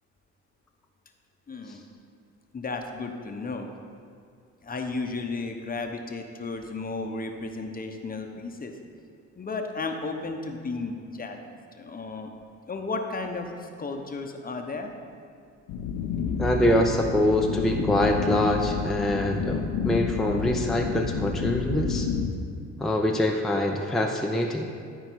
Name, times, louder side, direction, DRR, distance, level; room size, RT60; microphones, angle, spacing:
voice 1, 1.5-1.8 2.5-3.7 4.6-8.7 9.4-12.3 12.7-14.9, left 3 dB, 30° left, 4 dB, 0.9 m, -34 dB
sound 1, 15.7-22.3, left 6 dB, 90° left, 0.7 m, -29 dB
voice 2, 16.4-22.1 22.8-24.7, left 1 dB, ahead, 0 dB, 0.6 m, -24 dB
13.5 x 4.6 x 4.6 m, 2.3 s
cardioid pair, 90°, 30 cm